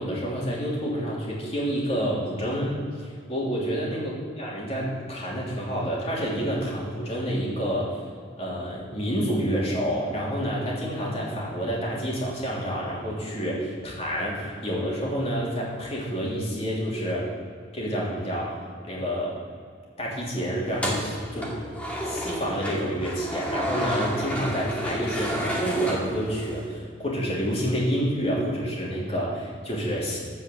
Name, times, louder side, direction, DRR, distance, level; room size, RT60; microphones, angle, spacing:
voice 1, 0.0-8.0 8.4-17.3 17.7-18.6 18.8-19.4 20.0-21.4 22.0-30.2, equal, 35° left, -5 dB, 3.1 m, -28 dB
sound 1, 20.7-26.7, equal, 5° left, 2.1 m, -31 dB
14.5 x 5.6 x 7.7 m, 2.1 s
head